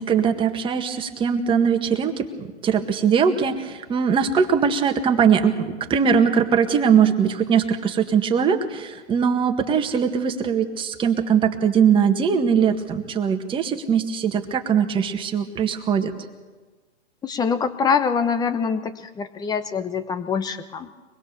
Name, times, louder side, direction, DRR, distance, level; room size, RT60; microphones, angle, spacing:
voice 1, 0.0-16.1, right 7 dB, 15° right, 5 dB, 1.7 m, -21 dB
voice 2, 17.2-20.9, left 6 dB, 10° left, 11 dB, 1.0 m, -24 dB
24.5 x 20.5 x 6.9 m, 1.3 s
hypercardioid pair, 130°, 35 cm